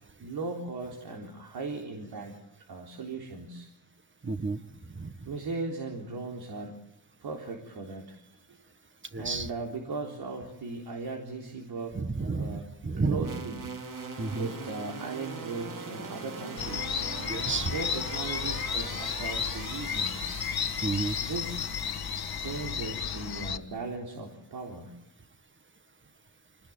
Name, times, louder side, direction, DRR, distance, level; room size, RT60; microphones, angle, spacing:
voice 1, 0.2-2.3 2.7-3.7 5.2-6.8 7.2-8.3 9.2-12.0 12.3-12.7 13.0-13.7 14.3-17.0 17.7-20.2 21.2-21.7 22.4-24.9, right 3 dB, 90° right, 1 dB, 3.9 m, -38 dB
voice 2, 4.2-4.6 4.9-5.1 9.1-9.5 11.9-13.3 14.2-14.5 17.3-17.7 20.8-21.2, right 3 dB, 30° right, 10 dB, 1.7 m, -31 dB
sound 1, 13.2-23.5, right 4 dB, 55° right, 3.2 m, -42 dB
sound 2, 16.6-23.6, left 8 dB, 80° left, 1.7 m, -33 dB
27.5 x 19.5 x 9.0 m, 0.87 s
wide cardioid pair, 105°, 37 cm